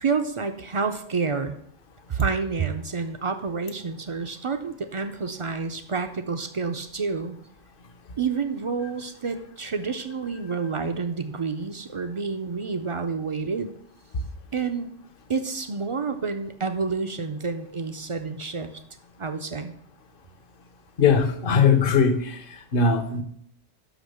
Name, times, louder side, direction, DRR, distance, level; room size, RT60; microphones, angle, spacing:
voice 1, 0.0-1.5 2.1-7.4 8.2-13.8 14.5-14.9 15.3-18.7 19.2-19.7, right 5 dB, 45° right, 7 dB, 0.4 m, -29 dB
voice 2, 21.0-23.2, left 5 dB, 55° left, 9 dB, 0.9 m, -20 dB
6.0 x 5.1 x 6.4 m, 0.67 s
omnidirectional pair, 1.2 m